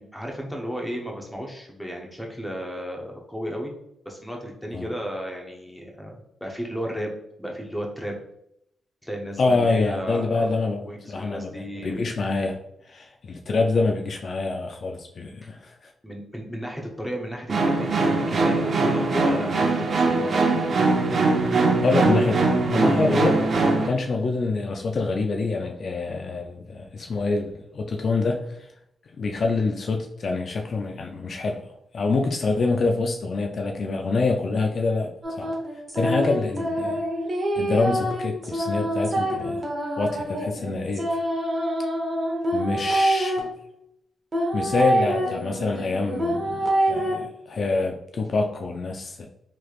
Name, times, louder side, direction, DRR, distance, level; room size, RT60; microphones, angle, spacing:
voice 1, 0.0-3.7 4.0-7.1 7.4-8.2 9.0-10.6 10.8-12.0 13.3-13.4 15.4-15.6 16.0-20.6, equal, 5° left, 0 dB, 0.7 m, -34 dB
voice 2, 9.4-11.5 11.8-12.6 12.9-15.9 21.8-23.4 23.8-28.7 29.1-31.6 31.9-35.5 35.9-37.0 37.6-39.6 40.0-41.2 42.5-43.5 44.5-49.3, left 3 dB, 55° left, 3 dB, 0.3 m, -26 dB
sound 1, 17.5-23.9, right 3 dB, 55° right, 0.5 m, -21 dB
sound 2, 35.2-43.4 44.3-47.1, right 1 dB, 35° right, 0.9 m, -26 dB
3.1 x 3.1 x 2.4 m, 0.77 s
cardioid pair, 85°, 0 cm